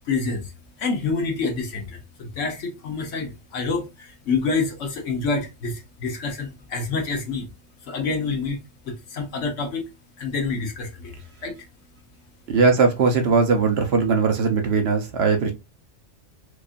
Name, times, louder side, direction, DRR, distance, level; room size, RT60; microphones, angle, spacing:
voice 1, 0.0-0.5 0.8-7.5 7.8-9.8 10.2-11.1 11.4-11.6, left 4 dB, 75° left, 1.4 m, -27 dB
voice 2, 12.5-15.5, right 4 dB, 60° right, 0.9 m, -19 dB
4.8 x 2.5 x 2.5 m
omnidirectional pair, 1.3 m